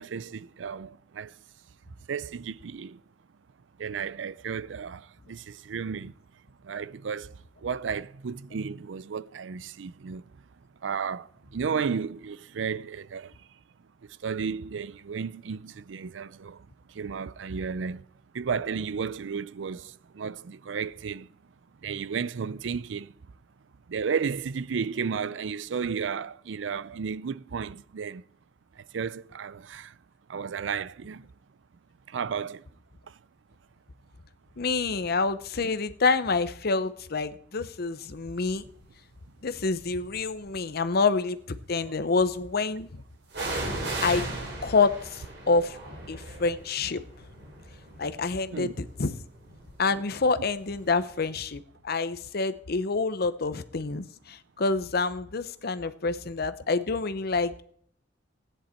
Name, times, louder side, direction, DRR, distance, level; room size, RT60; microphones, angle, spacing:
voice 1, 0.0-1.3 2.1-3.0 3.8-6.1 6.6-7.3 7.6-10.2 10.8-13.3 14.2-16.6 16.9-18.0 18.3-21.3 21.8-23.1 23.9-28.2 28.9-29.9 30.3-31.3 32.1-32.6 48.5-48.9, right 6 dB, 90° right, 0.5 m, -33 dB
voice 2, 34.6-38.6 39.4-42.9 44.0-44.3 44.6-45.8 46.1-47.0 48.0-49.1 49.8-57.5, left 4 dB, 55° left, 0.8 m, -27 dB
sound 1, 38.3-38.7 39.5-40.4 43.3-50.9 51.2-51.3, right 2 dB, 65° right, 4.2 m, -37 dB
16.0 x 10.0 x 4.4 m
head